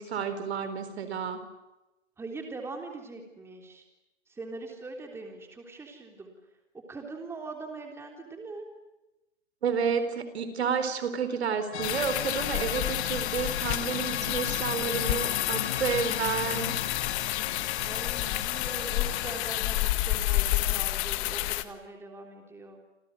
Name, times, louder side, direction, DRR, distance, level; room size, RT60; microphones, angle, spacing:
voice 1, 0.0-1.4 9.6-16.8, right 6 dB, 60° right, 10 dB, 4.4 m, -30 dB
voice 2, 2.2-3.8 4.3-6.3 6.9-8.7 17.8-22.8, right 3 dB, 5° right, 2 dB, 3.4 m, -42 dB
sound 1, 11.7-19.9, left 9 dB, 60° left, 1.9 m, -36 dB
sound 2, 11.8-21.6, left 17 dB, 25° left, 1.4 m, -30 dB
29.0 x 28.0 x 6.5 m, 1.0 s
hypercardioid pair, 140°, 37 cm